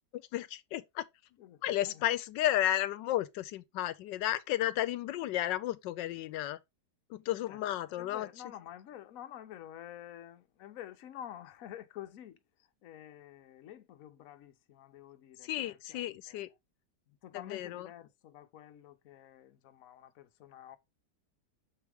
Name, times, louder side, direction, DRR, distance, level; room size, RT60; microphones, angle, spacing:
voice 1, 0.3-1.1 1.6-6.6 7.1-8.3 15.4-16.5 17.3-17.9, left 13 dB, 85° left, 1.2 m, -33 dB
voice 2, 1.4-2.0 7.5-12.4 12.8-16.5 17.1-20.8, left 11 dB, 60° left, 1.0 m, -49 dB
6.9 x 4.6 x 3.4 m
omnidirectional pair, 1.9 m